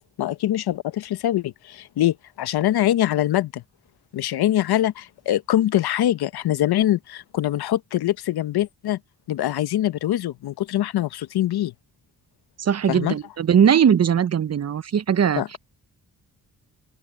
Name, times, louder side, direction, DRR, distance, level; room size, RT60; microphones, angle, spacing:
voice 1, 0.2-3.6 4.1-9.0 9.3-11.7 12.9-13.2 15.4-15.5, left 13 dB, 75° left, 1.2 m, -23 dB
voice 2, 12.6-15.6, right 8 dB, 40° right, 0.8 m, -20 dB
open air
supercardioid pair, 50°, 38 cm